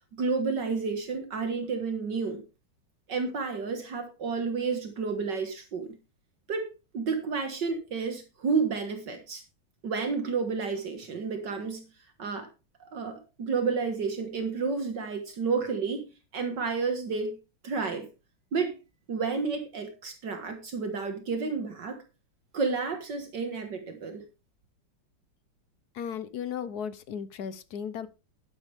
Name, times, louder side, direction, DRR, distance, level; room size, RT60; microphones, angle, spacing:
voice 1, 0.1-2.4 3.1-6.0 6.5-9.4 9.8-11.9 12.2-12.5 12.8-17.4 17.6-18.1 18.5-18.8 19.1-22.0 22.5-24.2, right 4 dB, 65° right, 2.2 m, -31 dB
voice 2, 25.9-28.1, left 8 dB, 60° left, 1.3 m, -35 dB
11.5 x 11.0 x 3.4 m
omnidirectional pair, 2.1 m